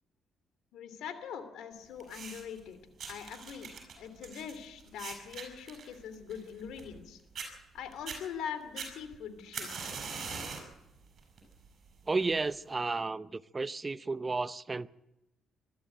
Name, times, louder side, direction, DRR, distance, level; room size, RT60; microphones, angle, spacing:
voice 1, 0.7-2.8 3.1-3.7 4.0-7.2 7.7-9.9, left 8 dB, 85° left, 2.9 m, -42 dB
sound 1, 2.0-2.6 3.0-7.0 7.3-7.5 7.9-8.2 8.8-10.7 11.2-11.5 12.3-12.4, right 5 dB, 55° right, 6.9 m, -42 dB
voice 2, 12.1-14.9, right 3 dB, 25° right, 0.7 m, -32 dB
23.0 x 13.0 x 9.2 m
cardioid pair, 90°, 0 cm